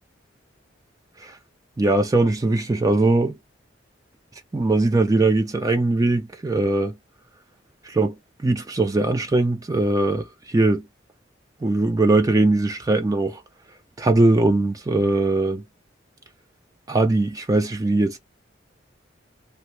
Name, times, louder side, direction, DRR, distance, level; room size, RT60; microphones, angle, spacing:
voice 1, 1.8-3.4 4.5-7.0 7.8-8.2 8.4-10.8 11.6-13.4 14.0-15.6 16.9-18.2, right 2 dB, 20° right, 0.4 m, -20 dB
2.9 x 2.0 x 3.1 m
head